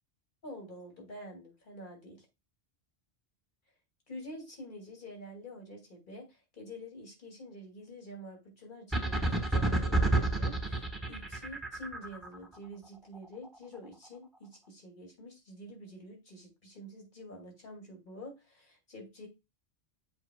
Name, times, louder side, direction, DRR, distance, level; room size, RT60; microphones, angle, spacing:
voice 1, 0.4-2.3 4.1-19.3, equal, 50° left, 1 dB, 2.7 m, -47 dB
sound 1, 8.9-12.4, right 2 dB, ahead, 1.2 m, -29 dB
7.8 x 5.2 x 2.3 m, 0.24 s
omnidirectional pair, 1.1 m